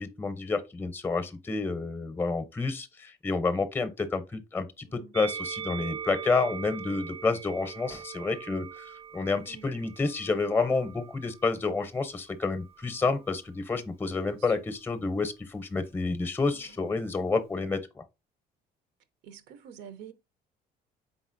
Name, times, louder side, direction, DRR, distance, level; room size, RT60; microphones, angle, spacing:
voice 1, 0.0-18.0, left 3 dB, 10° left, 0.6 m, -29 dB
Musical instrument, 5.1-11.5 12.4-13.4, right 7 dB, 40° right, 0.5 m, -41 dB
voice 2, 16.5-16.9 19.2-20.1, right 8 dB, 90° right, 0.7 m, -48 dB
4.0 x 3.9 x 2.5 m
cardioid pair, 110°, 17 cm